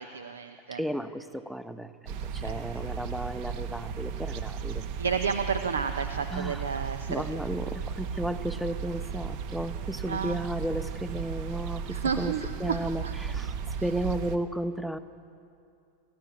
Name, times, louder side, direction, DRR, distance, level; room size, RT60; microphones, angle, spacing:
voice 1, 0.0-0.8 2.4-2.9 5.0-7.2 10.1-10.4 11.9-13.1, right 6 dB, 70° right, 9 dB, 0.8 m, -32 dB
voice 2, 0.7-4.8 6.3-12.3 12.6-13.6 13.8-15.0, right 1 dB, ahead, 11 dB, 1.0 m, -34 dB
sound 1, 2.1-14.4, right 7 dB, 45° right, 1.3 m, -35 dB
25.5 x 15.5 x 8.6 m, 2.6 s
figure-of-eight pair, 90°, 0 cm